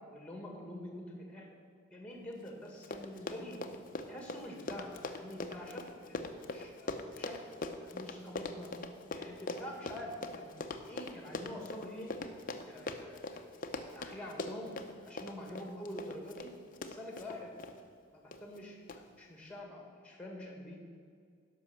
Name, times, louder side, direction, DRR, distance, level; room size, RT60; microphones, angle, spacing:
voice 1, 0.1-1.5 1.9-3.6 4.1-7.4 7.8-8.7 9.1-10.5 10.9-12.1 12.6-13.4 13.9-14.8 15.1-16.5 16.8-17.5 18.1-20.8, left 1 dB, 5° left, 0 dB, 1.8 m, -46 dB
Run, 2.5-2.6 2.8-17.7 18.3-18.6 18.9-19.0, left 2 dB, 45° left, 0.7 m, -41 dB
11.5 x 5.5 x 7.2 m, 2.2 s
head